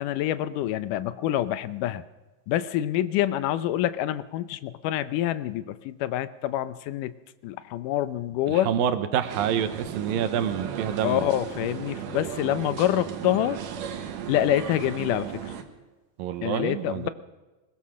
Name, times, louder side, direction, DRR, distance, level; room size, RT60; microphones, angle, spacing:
voice 1, 0.0-2.0 2.5-7.1 7.4-8.7 11.0-13.6 14.3-15.6 16.4-17.1, left 12 dB, 75° left, 14 dB, 2.2 m, -26 dB
voice 2, 8.5-11.3 16.2-17.1, right 9 dB, 90° right, 10 dB, 2.9 m, -27 dB
sound 1, 9.3-15.6, right 8 dB, 70° right, 2.9 m, -36 dB
21.0 x 20.0 x 6.3 m, 1.2 s
omnidirectional pair, 4.0 m